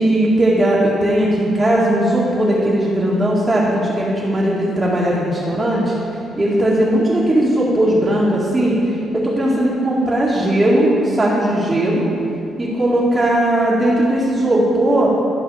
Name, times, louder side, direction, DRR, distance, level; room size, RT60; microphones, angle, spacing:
voice 1, 0.0-5.9 6.4-8.8 9.1-12.0 12.6-15.1, right 1 dB, 20° right, -9 dB, 1.9 m, -17 dB
11.5 x 5.5 x 4.9 m, 2.7 s
cardioid pair, 90°, 0 cm